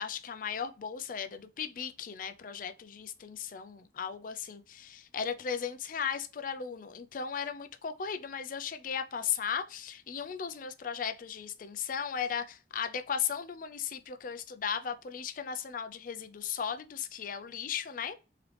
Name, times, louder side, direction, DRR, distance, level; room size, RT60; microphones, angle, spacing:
voice 1, 0.0-18.1, left 7 dB, 50° left, 0.4 m, -36 dB
3.7 x 3.3 x 3.2 m
head